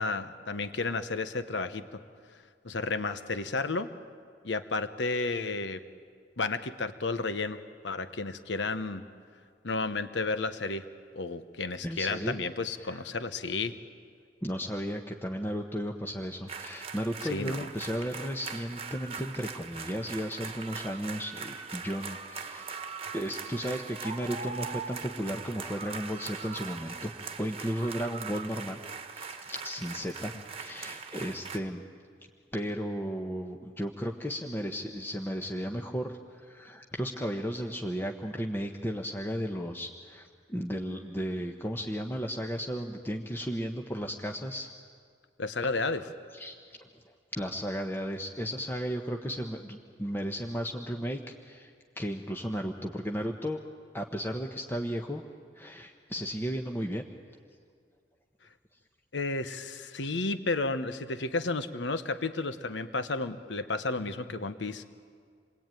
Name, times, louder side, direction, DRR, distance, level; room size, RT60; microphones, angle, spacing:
voice 1, 0.0-2.0 2.6-3.9 4.4-5.8 6.4-7.6 7.8-9.0 9.6-10.8 11.1-13.7 17.2-17.6 45.4-46.0 59.1-64.8, left 3 dB, 80° left, 10 dB, 1.1 m, -32 dB
voice 2, 11.8-12.4 12.8-13.0 14.4-22.8 23.1-28.8 29.1-31.8 32.5-44.7 45.8-46.0 46.3-46.5 47.3-53.6 53.9-55.2 55.5-57.1, equal, 15° left, 2 dB, 1.0 m, -34 dB
sound 1, 16.5-31.6, right 5 dB, 35° right, 1.4 m, -41 dB
28.0 x 22.0 x 9.1 m, 2.1 s
head